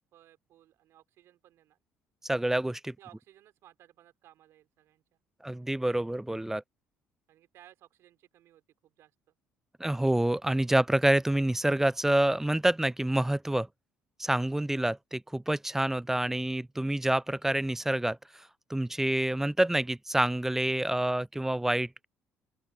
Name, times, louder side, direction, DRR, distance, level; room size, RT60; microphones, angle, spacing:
voice 1, 0.0-1.8 3.0-5.0 7.3-9.3, right 13 dB, 65° right, 4.5 m, -59 dB
voice 2, 2.2-2.9 5.4-6.6 9.8-13.7 14.2-22.1, right 1 dB, 5° right, 0.4 m, -27 dB
open air
hypercardioid pair, 55°, 5 cm